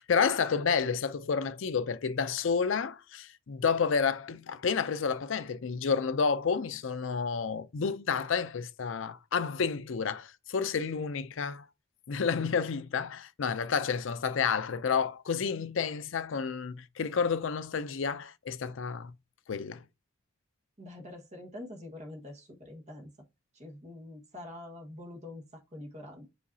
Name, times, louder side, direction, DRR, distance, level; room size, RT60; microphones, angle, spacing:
voice 1, 0.0-11.7 12.1-19.1 19.5-19.8, left 6 dB, 65° left, 0.5 m, -30 dB
voice 2, 20.8-23.1 23.5-26.3, left 1 dB, 35° right, 1.5 m, -45 dB
6.8 x 5.1 x 2.7 m
head